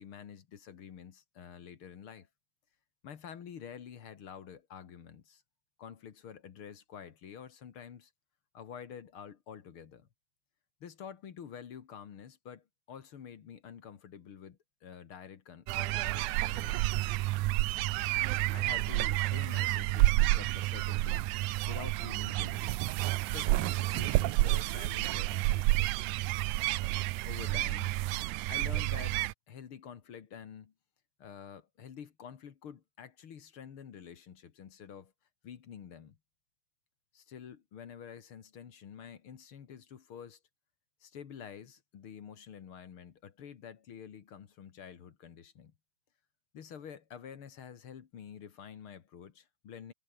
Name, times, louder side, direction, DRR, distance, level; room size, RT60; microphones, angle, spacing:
voice 1, 0.0-2.3 3.0-5.4 5.8-8.1 8.5-10.1 10.8-17.2 18.5-21.3 21.7-22.8 23.2-25.9 27.3-28.0 28.5-29.2 29.5-30.7 31.2-35.1 35.4-36.2 37.1-40.4 41.0-45.7 46.5-49.9, left 8 dB, 50° left, 2.0 m, -48 dB
sound 1, 15.7-29.3, right 19 dB, 80° right, 1.9 m, -30 dB
omnidirectional pair, 3.8 m